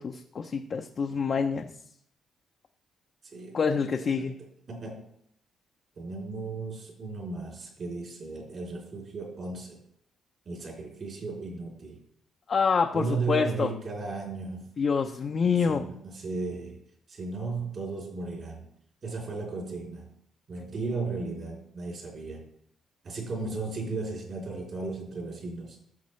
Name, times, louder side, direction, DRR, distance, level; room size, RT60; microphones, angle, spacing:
voice 1, 0.0-1.7 3.5-4.4 12.5-13.7 14.8-15.8, left 5 dB, 45° left, 4 dB, 0.7 m, -26 dB
voice 2, 3.2-3.6 3.9-4.3 4.7-5.1 6.0-9.8 10.4-12.0 12.9-14.7 15.6-16.8 17.1-18.7 19.0-20.1 20.5-22.5 23.0-25.8, right 3 dB, 50° right, -1 dB, 3.3 m, -35 dB
13.5 x 6.5 x 3.2 m, 0.70 s
cardioid pair, 90°, 0 cm